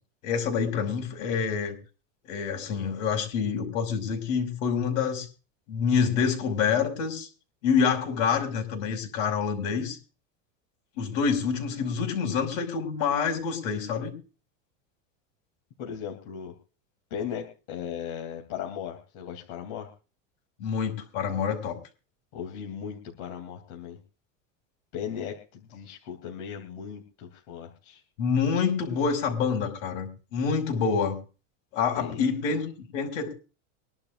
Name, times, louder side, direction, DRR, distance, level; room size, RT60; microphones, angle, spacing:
voice 1, 0.2-1.8 2.3-5.3 5.7-7.3 7.6-10.0 11.0-14.1 20.6-21.8 28.2-31.2 31.7-33.3, left 6 dB, 80° left, 3 dB, 5.9 m, -27 dB
voice 2, 15.8-16.5 17.1-19.9 22.3-24.0 24.9-28.0 31.9-32.2, left 8 dB, 65° left, 2 dB, 3.3 m, -37 dB
24.5 x 11.5 x 2.6 m, 0.35 s
supercardioid pair, 145°, 39 cm